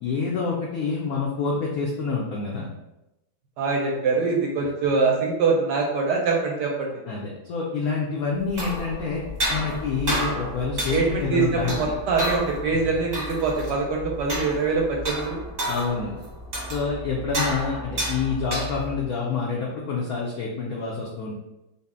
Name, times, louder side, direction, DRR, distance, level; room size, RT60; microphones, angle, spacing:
voice 1, 0.0-2.7 7.1-9.2 9.5-11.9 15.7-16.1 16.7-21.3, left 5 dB, 80° left, -2 dB, 0.8 m, -27 dB
voice 2, 3.6-7.0 10.9-15.4, right 4 dB, 75° right, -1 dB, 1.0 m, -24 dB
sound 1, 8.4-19.1, equal, 35° right, 0.7 m, -31 dB
4.0 x 2.0 x 3.6 m, 0.93 s
omnidirectional pair, 2.2 m